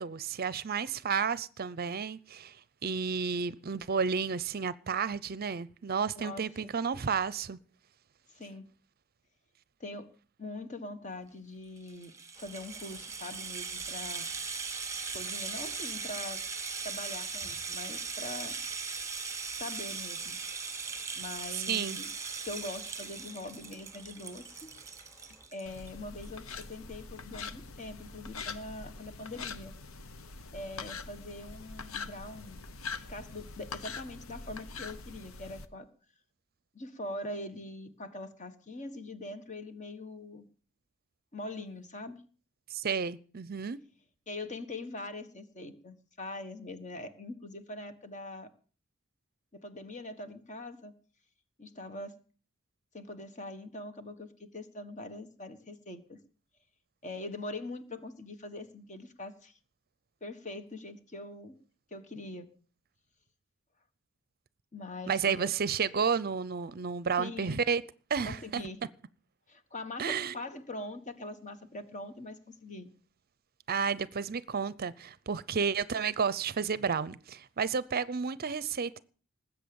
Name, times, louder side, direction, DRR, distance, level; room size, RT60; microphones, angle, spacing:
voice 1, 0.0-7.6 21.5-22.0 42.7-43.8 65.1-67.8 68.1-68.6 70.0-70.3 73.7-79.0, right 6 dB, 45° right, 0.6 m, -31 dB
voice 2, 6.1-6.7 8.3-8.7 9.8-10.1 10.4-14.3 15.1-16.4 16.8-18.6 19.5-20.4 21.1-22.1 22.4-24.7 25.5-29.7 30.5-32.6 32.9-35.9 36.7-40.5 41.3-42.2 44.3-48.5 49.5-50.9 51.6-52.2 52.9-56.2 57.0-59.5 60.2-61.5 61.9-62.5 64.7-65.5 67.2-67.6 68.2-68.8 69.5-72.9, left 2 dB, 35° left, 1.5 m, -43 dB
Rattle (instrument), 11.8-25.9 26.2-26.3 26.6-26.7, right 5 dB, 15° right, 1.5 m, -39 dB
sound 1, 12.3-25.5, equal, 15° left, 3.5 m, -60 dB
sound 2, 25.7-35.7, left 4 dB, 80° left, 1.1 m, -43 dB
20.0 x 8.2 x 7.0 m
head